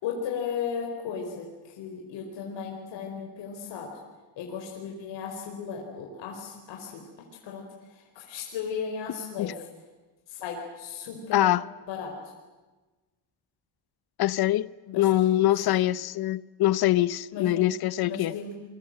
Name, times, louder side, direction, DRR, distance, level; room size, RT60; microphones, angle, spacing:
voice 1, 0.0-3.9 4.4-7.0 7.4-7.6 7.9-9.7 10.3-11.4 11.9-12.1 14.9-15.1 15.6-15.7 17.3-17.5 18.0-18.5, left 6 dB, 80° left, 4.9 m, -35 dB
voice 2, 11.3-11.6 14.2-18.3, left 14 dB, 60° left, 0.9 m, -24 dB
28.5 x 24.0 x 7.9 m
cardioid pair, 130°, 43 cm